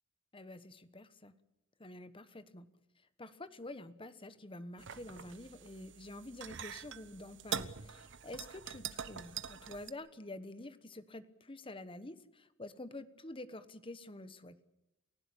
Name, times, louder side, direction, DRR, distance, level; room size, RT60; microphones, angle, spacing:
voice 1, 0.3-1.3 1.8-2.7 3.2-14.7, left 2 dB, 25° left, 13 dB, 1.2 m, -48 dB
sound 1, 4.8-9.9, right 7 dB, 60° right, 1.1 m, -44 dB
30.0 x 16.0 x 8.5 m, 0.88 s
head